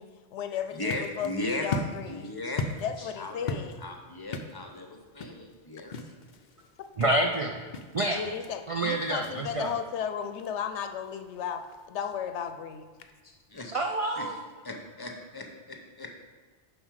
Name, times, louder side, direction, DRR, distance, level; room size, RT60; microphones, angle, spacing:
voice 1, 0.0-2.3 2.8-3.8 8.1-12.8, left 8 dB, 80° left, 8 dB, 0.9 m, -35 dB
sound 1, 0.5-14.1, left 3 dB, 55° left, 0.5 m, -41 dB
voice 2, 0.5-1.7 2.1-2.7 3.2-5.9 13.5-13.7 14.2-14.3 14.6-16.1, left 2 dB, 25° left, 3 dB, 0.7 m, -37 dB
voice 3, 7.0-7.6 7.9-8.3 8.7-9.7 13.7-14.4, right 1 dB, 55° right, 3 dB, 0.3 m, -28 dB
7.3 x 5.1 x 4.7 m, 1.4 s
omnidirectional pair, 1.2 m